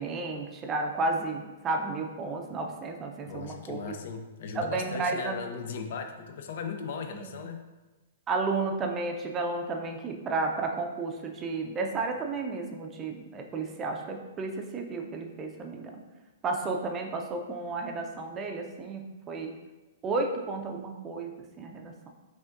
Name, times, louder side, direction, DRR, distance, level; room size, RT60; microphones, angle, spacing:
voice 1, 0.0-3.8 4.5-5.3 7.2-7.3 8.3-16.0 16.4-19.5 20.0-22.1, right 3 dB, 25° right, 3 dB, 0.5 m, -32 dB
voice 2, 3.2-7.6, left 5 dB, 60° left, 6 dB, 0.4 m, -37 dB
5.1 x 2.5 x 2.5 m, 1.2 s
hypercardioid pair, 120°, 0 cm